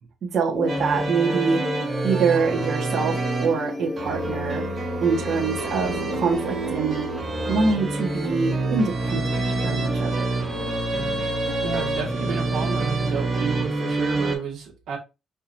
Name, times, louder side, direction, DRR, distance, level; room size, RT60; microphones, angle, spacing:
voice 1, 0.2-1.6 2.0-4.6 5.0-7.0 7.5-9.3 9.6-10.2, right 5 dB, 65° right, 1.4 m, -24 dB
sound 1, 0.5-14.0, left 4 dB, 40° left, 0.7 m, -36 dB
sound 2, 0.7-14.4, right 2 dB, 35° right, 1.9 m, -27 dB
voice 2, 11.6-15.0, right 6 dB, 80° right, 2.1 m, -31 dB
5.2 x 2.9 x 2.7 m
cardioid pair, 90°, 0 cm